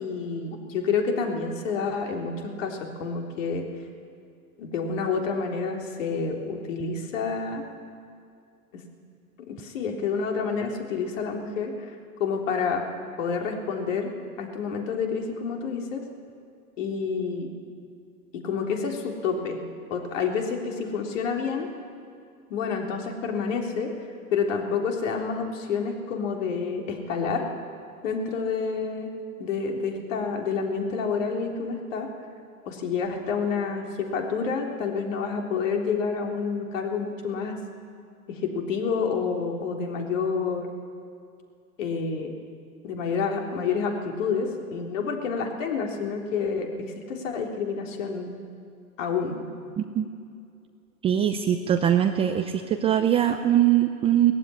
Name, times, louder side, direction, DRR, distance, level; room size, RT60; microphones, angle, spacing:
voice 1, 0.0-2.3 2.6-3.7 4.6-7.6 8.7-8.8 9.5-12.9 13.2-16.0 16.8-17.5 18.3-19.6 19.9-21.7 22.5-23.9 24.3-27.5 28.0-29.1 29.4-32.1 32.7-37.6 38.3-40.7 41.8-42.3 42.8-48.3 49.0-49.4, left 5 dB, 55° left, 2 dB, 3.6 m, -28 dB
voice 2, 51.0-52.5 52.8-54.3, right 10 dB, 15° right, 6 dB, 0.6 m, -21 dB
19.0 x 15.0 x 9.8 m, 2.4 s
hypercardioid pair, 125°, 45 cm